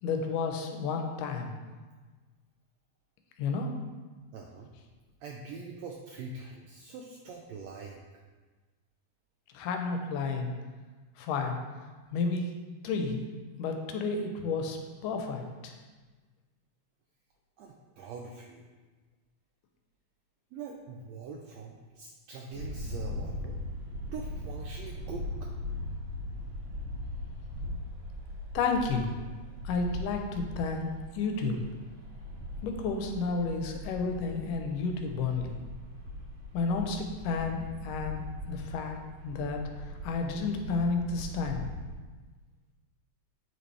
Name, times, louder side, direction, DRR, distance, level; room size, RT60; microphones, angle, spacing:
voice 1, 0.0-1.5 3.4-3.7 9.5-10.5 11.2-11.6 12.1-12.5 12.8-13.3 13.6-15.7 28.5-29.1 29.7-31.6 32.6-35.5 36.5-38.2 38.5-39.0 39.2-41.6, left 4 dB, 90° left, 4 dB, 2.3 m, -31 dB
voice 2, 4.3-4.7 5.2-8.0 17.6-18.7 20.5-23.6 24.1-25.5, right 4 dB, 80° right, 1 dB, 1.5 m, -43 dB
sound 1, 22.5-41.9, left 1 dB, 45° right, 2.4 m, -40 dB
8.9 x 5.2 x 3.3 m, 1.3 s
omnidirectional pair, 3.7 m